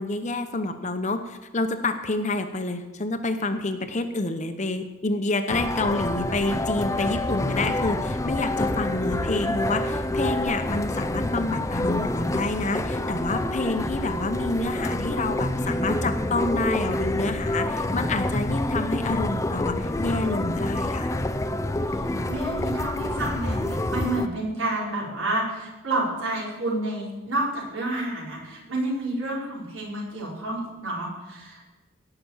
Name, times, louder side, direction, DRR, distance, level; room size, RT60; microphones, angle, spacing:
voice 1, 0.0-21.1, left 2 dB, 35° left, 8 dB, 0.8 m, -28 dB
sound 1, 5.5-24.3, left 1 dB, 15° left, 0.4 m, -27 dB
voice 2, 21.9-31.6, right 2 dB, 75° right, -5 dB, 4.5 m, -29 dB
17.0 x 5.9 x 7.2 m, 1.1 s
head